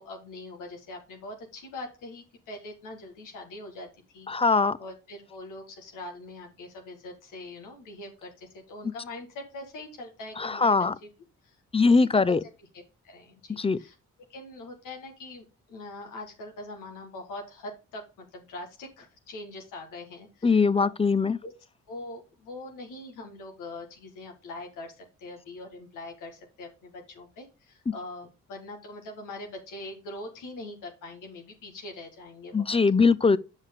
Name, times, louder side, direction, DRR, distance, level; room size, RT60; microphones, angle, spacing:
voice 1, 0.0-4.3 4.8-10.7 11.4-11.6 12.0-12.3 13.0-13.9 14.3-20.9 21.4-21.5 21.9-32.8, left 2 dB, 85° left, 1.5 m, -42 dB
voice 2, 4.3-4.8 10.4-10.9 11.7-12.4 13.6-13.8 20.4-21.4 32.5-33.4, left 4 dB, 20° left, 0.5 m, -21 dB
8.1 x 5.5 x 3.5 m
supercardioid pair, 55°, 31 cm